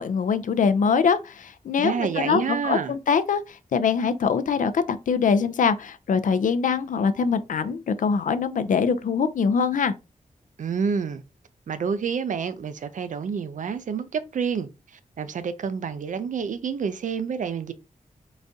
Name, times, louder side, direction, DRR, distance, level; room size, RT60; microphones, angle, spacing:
voice 1, 0.0-9.9, left 6 dB, 70° left, 0.4 m, -23 dB
voice 2, 1.8-2.9 10.6-11.2 11.7-14.7 15.2-17.7, right 6 dB, 70° right, 0.5 m, -28 dB
4.0 x 3.4 x 2.6 m
wide cardioid pair, 160°, 14 cm